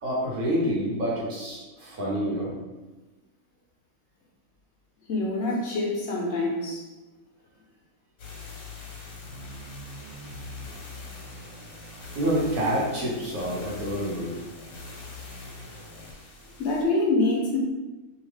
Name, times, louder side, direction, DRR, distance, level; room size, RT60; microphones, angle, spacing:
voice 1, 0.0-2.5 12.1-14.4, equal, 85° right, -4 dB, 1.4 m, -27 dB
voice 2, 5.1-6.9 16.6-17.6, left 2 dB, 60° left, -2 dB, 0.9 m, -25 dB
sound 1, 8.2-16.8, left 2 dB, 80° left, 1.2 m, -42 dB
2.8 x 2.8 x 3.2 m, 1.1 s
omnidirectional pair, 1.4 m